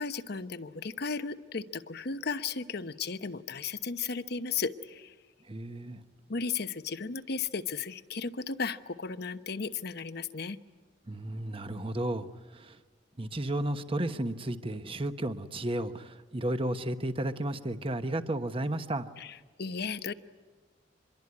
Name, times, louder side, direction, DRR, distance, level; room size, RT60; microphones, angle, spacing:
voice 1, 0.0-5.1 6.3-10.6 19.2-20.1, left 5 dB, 60° left, 1.0 m, -35 dB
voice 2, 5.5-6.0 11.1-12.8 13.2-19.1, right 1 dB, 30° right, 1.1 m, -33 dB
26.0 x 22.5 x 9.7 m
head